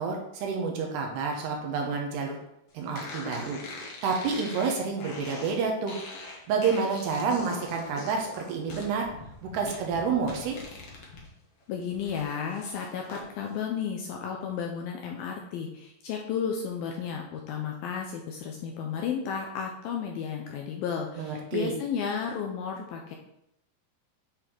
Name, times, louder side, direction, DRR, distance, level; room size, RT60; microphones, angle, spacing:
voice 1, 0.0-2.4 2.7-6.0 6.5-9.1 9.4-10.6 21.2-21.7, right 5 dB, 75° right, 1 dB, 3.0 m, -29 dB
musical farts, 2.9-11.3 11.6-13.2, left 2 dB, 60° left, 1.5 m, -43 dB
voice 2, 11.7-23.2, left 7 dB, 80° left, 1 dB, 2.2 m, -33 dB
9.6 x 4.2 x 4.4 m, 0.78 s
omnidirectional pair, 5.0 m